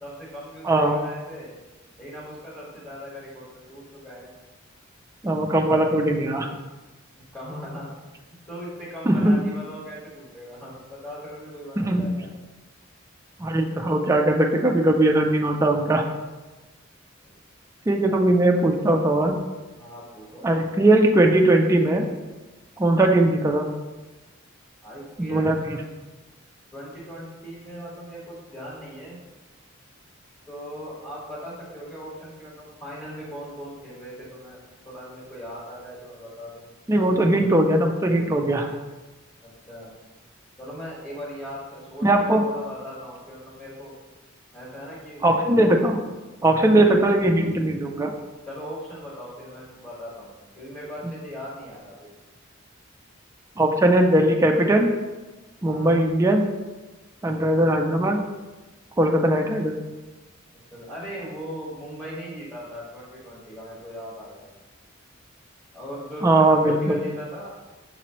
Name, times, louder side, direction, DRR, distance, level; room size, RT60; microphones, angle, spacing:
voice 1, 0.0-1.5 2.0-4.3 7.3-8.0 8.5-12.3 17.2-17.3 19.7-20.5 23.0-23.2 24.8-25.9 26.7-29.2 30.5-34.6 34.8-36.6 39.4-40.0 40.6-43.9 44.5-45.2 48.5-52.1 55.6-56.0 60.7-64.5 65.7-67.6, equal, 10° left, -8 dB, 1.2 m, -39 dB
voice 2, 0.6-1.0 5.2-6.5 9.1-9.4 11.8-12.1 13.4-16.0 17.9-19.4 20.4-22.1 22.8-23.7 25.2-25.5 36.9-38.7 42.0-42.5 45.2-46.0 46.4-48.1 53.6-54.9 55.6-56.5 57.2-58.2 59.0-59.8 66.2-67.0, right 1 dB, 15° right, 2 dB, 0.3 m, -19 dB
5.9 x 3.0 x 2.9 m, 1.2 s
head